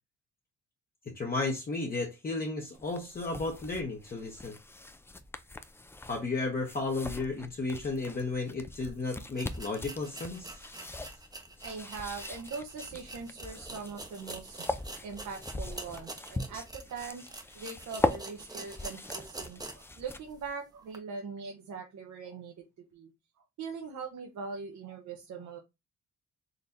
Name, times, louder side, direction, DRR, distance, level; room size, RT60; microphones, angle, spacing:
voice 1, 1.2-4.6 6.1-11.0, left 3 dB, 30° left, 1.0 m, -34 dB
sound 1, 2.7-20.5, left 2 dB, 10° left, 0.4 m, -40 dB
sound 2, 8.8-8.9 9.3-19.9 20.3-20.4 20.9-21.0, right 2 dB, 15° right, 0.8 m, -46 dB
voice 2, 11.6-14.7 15.0-22.5 22.9-23.1 23.6-25.6, right 5 dB, 70° right, 1.0 m, -41 dB
4.1 x 3.2 x 2.6 m
cardioid pair, 90°, 30 cm